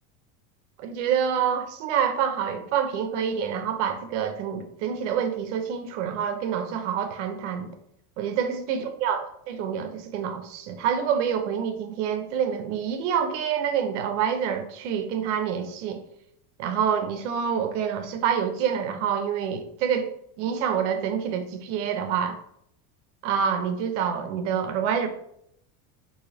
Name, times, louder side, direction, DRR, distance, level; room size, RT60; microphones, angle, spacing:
voice 1, 0.8-7.7 8.2-16.0 16.6-20.1 20.4-22.4 23.2-25.1, right 8 dB, 55° right, 7 dB, 0.5 m, -27 dB
3.7 x 2.7 x 3.2 m, 0.73 s
supercardioid pair, 180°, 45 cm